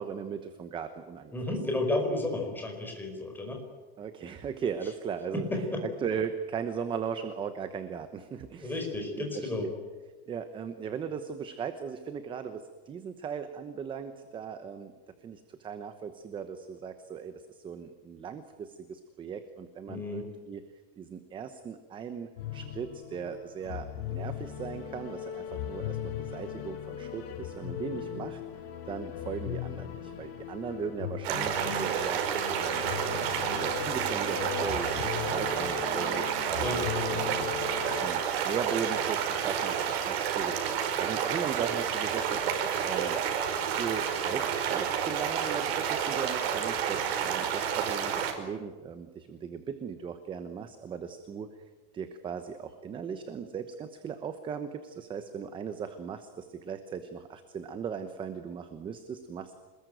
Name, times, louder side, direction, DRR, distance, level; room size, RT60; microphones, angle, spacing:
voice 1, 0.0-1.4 4.0-8.9 9.2-9.7 10.3-14.9 15.2-20.6 21.0-28.4 28.9-32.2 32.6-37.6 37.9-43.2 43.7-51.5 51.9-59.5, right 7 dB, 15° right, 9 dB, 1.0 m, -38 dB
voice 2, 1.3-3.6 5.3-5.8 8.6-9.7 19.9-20.3 36.6-36.8, left 2 dB, 5° left, 2 dB, 4.8 m, -32 dB
sound 1, 22.4-38.1, left 9 dB, 80° left, 5.5 m, -38 dB
sound 2, 31.2-48.3, right 8 dB, 75° right, 5.3 m, -30 dB
27.0 x 20.5 x 9.2 m, 1.3 s
supercardioid pair, 175°, 31 cm